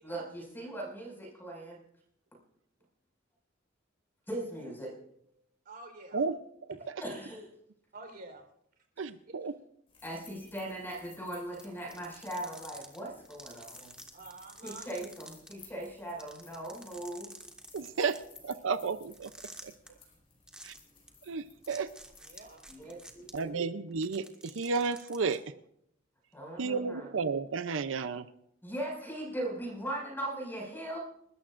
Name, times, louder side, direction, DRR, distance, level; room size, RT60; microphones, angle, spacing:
voice 1, 0.0-1.8 4.3-4.9 7.0-7.5 10.0-13.9 14.6-17.3 22.7-23.6 26.3-27.1 28.6-31.0, right 1 dB, 10° left, -2 dB, 5.7 m, -39 dB
voice 2, 5.6-6.2 6.8-6.9 7.9-8.4 10.1-10.2 14.1-14.8 22.2-23.0, right 3 dB, 55° right, 3 dB, 4.1 m, -49 dB
voice 3, 9.0-9.5 17.7-18.2 18.4-19.3 21.3-21.9 23.3-25.4 26.6-28.2, right 5 dB, 85° right, 12 dB, 0.6 m, -32 dB
sound 1, 9.9-23.4, left 5 dB, 30° left, 4.9 m, -58 dB
sound 2, 11.5-15.5 15.8-15.9 16.2-18.4 19.1-19.9 20.5-20.8 21.1-21.2 21.6-23.3 23.9-25.3, right 1 dB, 5° right, 1.6 m, -49 dB
30.0 x 13.5 x 2.5 m, 0.72 s
head